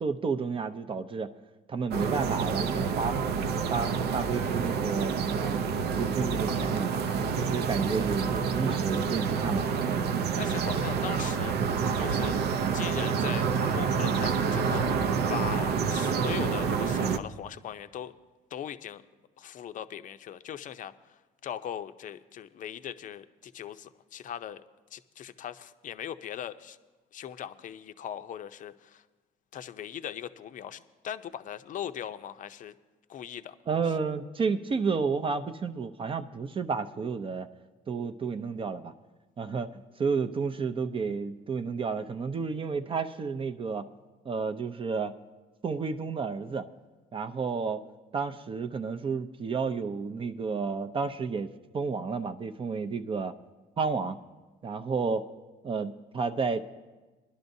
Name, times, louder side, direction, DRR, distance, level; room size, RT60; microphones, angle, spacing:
voice 1, 0.0-1.3 1.7-3.2 3.7-5.6 6.0-6.9 7.4-9.6 33.7-37.5 37.9-38.9 39.4-43.9 44.2-45.1 45.6-46.7 47.1-47.8 48.1-51.5 51.7-53.3 53.8-54.2 54.6-55.3 55.6-56.6, right 5 dB, 30° right, 8 dB, 0.5 m, -31 dB
sound 1, 1.9-17.2, right 6 dB, 75° right, 0.6 m, -28 dB
voice 2, 10.4-12.4 12.7-18.1 18.5-19.0 19.4-24.6 24.9-26.8 27.1-29.0 29.5-32.7 33.1-33.5, left 9 dB, 50° left, 11 dB, 0.6 m, -39 dB
21.5 x 11.5 x 2.7 m, 1.2 s
cardioid pair, 110°, 17 cm